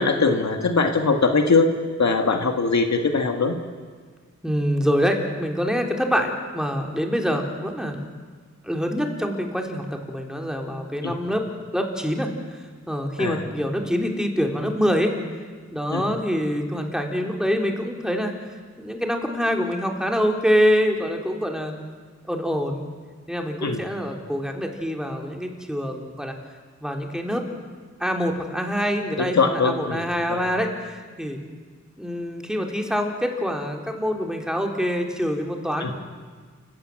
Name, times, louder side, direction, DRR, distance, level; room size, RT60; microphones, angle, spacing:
voice 1, 0.0-1.7 2.0-3.6 11.0-11.2 13.2-13.4 15.9-16.0 23.6-23.8 29.3-30.5 35.8-35.9, left 4 dB, 70° left, 5 dB, 1.9 m, -21 dB
voice 2, 4.4-8.0 8.6-11.5 11.7-15.1 15.7-18.3 18.8-21.7 22.3-22.8 23.3-26.3 26.8-27.4 28.0-31.4 32.0-35.9, equal, ahead, 2 dB, 3.5 m, -25 dB
28.5 x 16.0 x 7.8 m, 1.5 s
cardioid pair, 60°, 29 cm